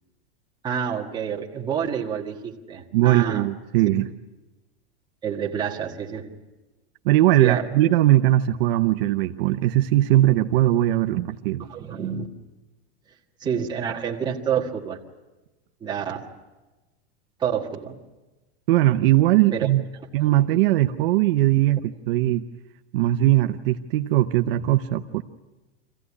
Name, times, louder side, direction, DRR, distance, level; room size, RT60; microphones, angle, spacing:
voice 1, 0.6-3.5 5.2-6.3 7.4-7.7 11.7-12.3 13.4-15.0 15.8-16.3 17.4-18.0 19.5-19.7, right 8 dB, 15° right, -1 dB, 1.6 m, -28 dB
voice 2, 2.9-4.1 7.0-11.6 18.7-19.8 20.1-22.4 22.9-25.2, right 14 dB, 55° right, 7 dB, 0.8 m, -20 dB
25.0 x 15.5 x 9.7 m, 1.2 s
supercardioid pair, 170°, 33 cm